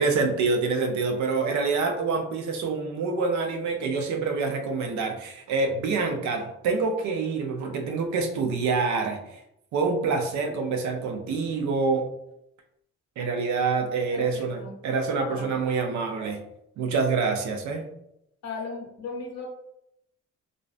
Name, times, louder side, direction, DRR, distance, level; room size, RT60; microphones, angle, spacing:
voice 1, 0.0-9.4 9.7-12.1 13.2-16.4 16.8-17.9, right 4 dB, 70° right, 5 dB, 0.5 m, -26 dB
voice 2, 14.1-14.8 15.3-15.5 18.4-19.5, left 4 dB, 60° left, 1 dB, 0.8 m, -37 dB
2.5 x 2.1 x 2.4 m, 0.79 s
cardioid pair, 90°, 30 cm